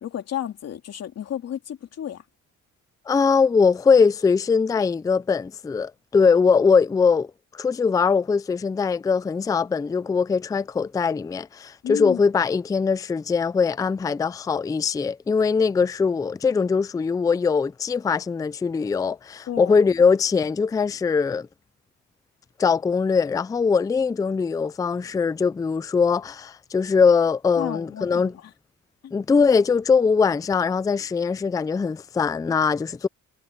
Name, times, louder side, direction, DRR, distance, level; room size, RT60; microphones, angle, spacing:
voice 1, 0.0-2.2 11.8-12.2 19.5-19.8 27.6-28.5 29.0-29.1, left 10 dB, 55° left, 2.8 m, -32 dB
voice 2, 3.1-21.5 22.6-28.3 29.1-33.1, left 5 dB, 10° left, 0.4 m, -21 dB
cardioid pair, 135°, 30 cm